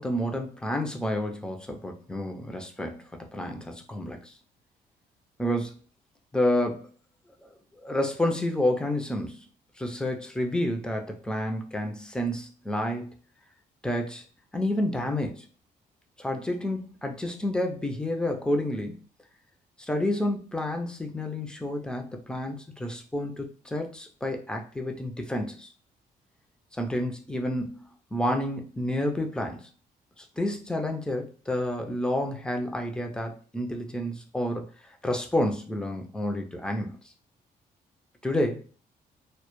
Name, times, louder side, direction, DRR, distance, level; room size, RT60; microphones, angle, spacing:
voice 1, 0.0-4.3 5.4-5.8 6.3-6.9 7.4-7.5 7.8-9.4 9.8-13.1 13.8-14.2 14.5-15.5 16.2-19.0 19.8-25.7 26.8-29.7 30.2-34.6 35.0-36.9 38.2-38.6, left 1 dB, 5° left, 3 dB, 0.3 m, -30 dB
2.1 x 2.0 x 2.9 m, 0.39 s
cardioid pair, 125°, 16 cm